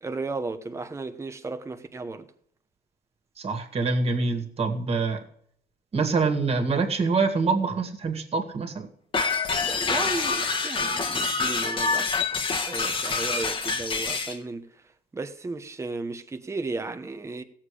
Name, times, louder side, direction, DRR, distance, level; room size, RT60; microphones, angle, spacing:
voice 1, 0.0-2.3 9.6-14.7 15.1-17.4, right 3 dB, 15° right, 1.0 m, -34 dB
voice 2, 3.4-5.2 5.9-8.9, right 4 dB, 35° right, 2.2 m, -25 dB
sound 1, 9.1-14.4, left 4 dB, 30° left, 1.4 m, -26 dB
17.0 x 7.3 x 5.0 m
cardioid pair, 110°, 17 cm